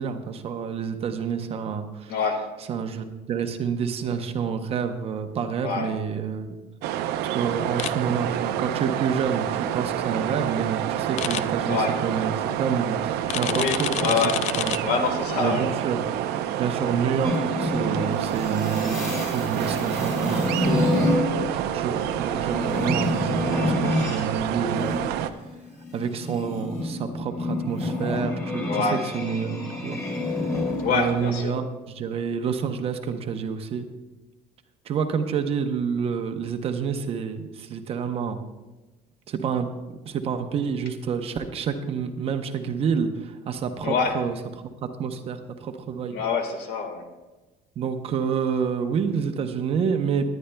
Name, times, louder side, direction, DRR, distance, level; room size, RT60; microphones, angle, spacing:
voice 1, 0.0-2.2 2.7-6.6 7.3-14.2 14.6-14.7 15.4-16.0 16.6-25.1 25.9-30.0 30.3-33.9 34.8-38.4 39.3-44.4 44.8-46.2 47.8-50.3, right 6 dB, 35° right, 7 dB, 0.7 m, -28 dB
voice 2, 2.1-2.4 5.6-5.9 11.6-11.9 13.5-14.3 14.8-15.6 28.7-29.0 30.8-31.5 43.8-44.2 46.1-47.0, left 5 dB, 70° left, 5 dB, 1.6 m, -25 dB
sound 1, 6.8-25.3, right 11 dB, 75° right, 0.6 m, -28 dB
sound 2, 7.8-7.9 11.2-11.4 13.3-14.8, left 11 dB, 45° left, 0.4 m, -28 dB
sound 3, 17.2-24.2 24.6-31.4, left 2 dB, 20° left, 2.7 m, -28 dB
20.0 x 10.0 x 2.2 m, 1.1 s
cardioid pair, 170°, 17 cm